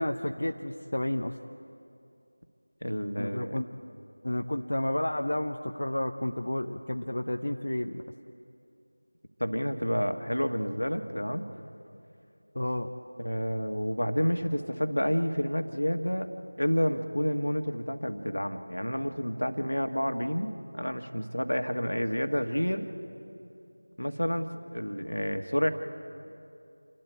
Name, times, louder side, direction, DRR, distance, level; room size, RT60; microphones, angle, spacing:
voice 1, 0.0-1.4 3.2-3.7 4.2-8.0 12.5-12.9, left 1 dB, 55° left, 4 dB, 0.8 m, -31 dB
voice 2, 2.8-3.6 9.4-11.4 13.2-16.3 16.6-22.9 24.0-24.5 24.7-25.7, equal, 75° left, 7 dB, 1.6 m, -29 dB
29.0 x 12.5 x 8.4 m, 2.6 s
figure-of-eight pair, 175°, 0 cm